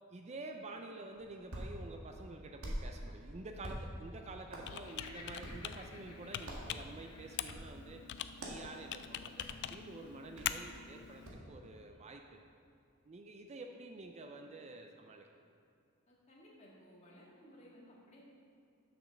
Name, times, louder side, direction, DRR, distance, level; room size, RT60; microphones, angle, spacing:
voice 1, 0.1-8.0 8.4-12.4 13.0-15.3, right 2 dB, 30° right, 4 dB, 0.4 m, -49 dB
Hands, 1.1-11.5, equal, 75° right, 1.7 m, -48 dB
Laughter, 4.6-7.6, left 3 dB, 85° left, 1.1 m, -55 dB
Computer keyboard, 4.6-11.3, left 10 dB, 55° left, 0.3 m, -44 dB
voice 2, 16.1-18.2, equal, 30° left, -5 dB, 1.8 m, -58 dB
7.0 x 6.0 x 6.3 m, 2.5 s
head